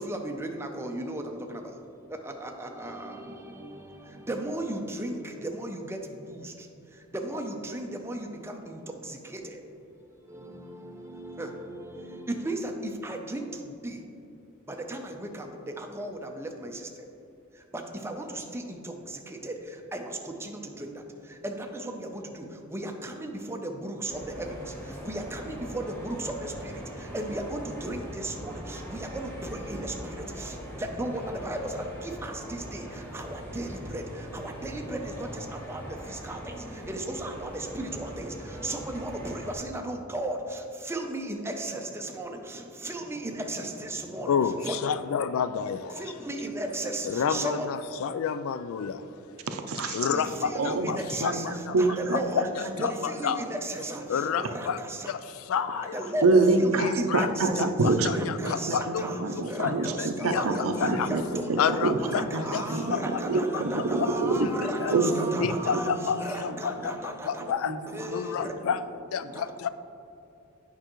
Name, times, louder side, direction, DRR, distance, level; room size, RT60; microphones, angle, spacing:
voice 1, 0.0-1.8 2.1-14.0 14.7-17.1 17.5-44.8 45.9-47.7 50.0-55.1 55.9-56.3 56.6-57.1 57.4-57.7 58.1-67.5 67.9-68.5 69.3-69.5, right 1 dB, 10° right, 3 dB, 0.5 m, -36 dB
sound 1, 24.0-39.5, equal, 10° left, 1.3 m, -41 dB
voice 2, 44.3-46.0 47.1-49.0 49.9-51.7 52.8-53.4 54.1-54.8 55.1-56.0 56.8-57.3 57.6-59.7 60.0-60.4 60.8-61.1 61.6-62.2 62.5-62.6 62.9-63.2 64.0-64.1 64.8-64.9 65.4-67.8 68.1-68.8 69.1-69.7, left 7 dB, 70° left, 13 dB, 0.3 m, -29 dB
voice 3, 49.5-50.1 50.5-52.9 55.7-55.8 56.2-64.5 64.9-66.6 67.4-67.9 68.4-68.8 69.2-69.3, right 3 dB, 80° right, 7 dB, 0.5 m, -27 dB
8.8 x 5.4 x 3.0 m, 2.7 s
head